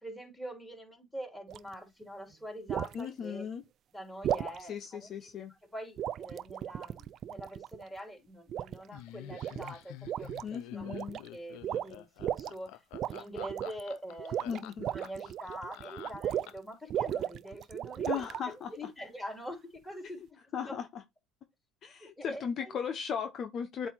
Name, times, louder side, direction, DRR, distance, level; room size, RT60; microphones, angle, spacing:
voice 1, 0.0-3.5 3.9-11.0 11.3-12.8 13.1-14.4 14.9-20.2 20.6-20.8 22.0-22.8, equal, 10° left, 3.4 m, -45 dB
sound 1, 1.5-1.7 2.7-3.0 4.2-4.6 6.0-7.8 8.5-9.0 9.3-9.7 10.0-10.5 10.8-11.3 11.6-12.5 12.9-13.8 14.2-16.6 16.9-18.4, right 10 dB, 55° right, 0.3 m, -35 dB
voice 2, 2.9-3.6 4.7-5.5 10.4-11.2 14.5-14.9 18.1-18.7 20.5-20.9 21.8-23.9, left 7 dB, 50° left, 0.8 m, -37 dB
Laughter, 8.9-16.8, left 14 dB, 75° left, 0.5 m, -48 dB
8.0 x 2.7 x 4.4 m
supercardioid pair, 85°, 0 cm